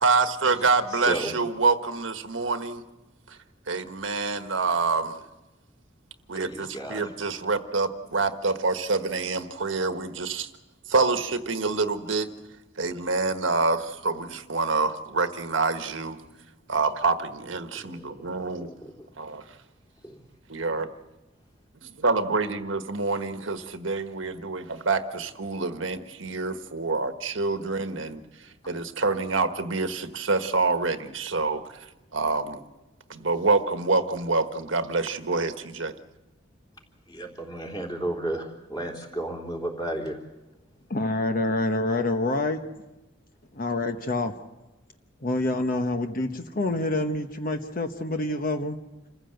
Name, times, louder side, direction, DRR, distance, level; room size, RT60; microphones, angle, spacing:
voice 1, 0.0-2.8 3.3-3.4 3.7-5.2 6.3-10.5 10.9-12.3 12.8-16.2 16.7-18.7 19.2-19.4 20.5-20.9 22.0-31.9 32.1-32.6 33.1-35.9, right 3 dB, 80° right, 8 dB, 1.4 m, -26 dB
voice 2, 0.9-1.3 6.3-7.1 17.7-18.2 18.6-19.1 20.0-20.2 37.1-40.2, right 1 dB, 20° left, 0 dB, 3.5 m, -33 dB
voice 3, 40.9-42.6 43.5-44.3 45.2-48.8, left 2 dB, 45° left, 6 dB, 1.0 m, -27 dB
27.5 x 15.5 x 7.9 m, 1.0 s
head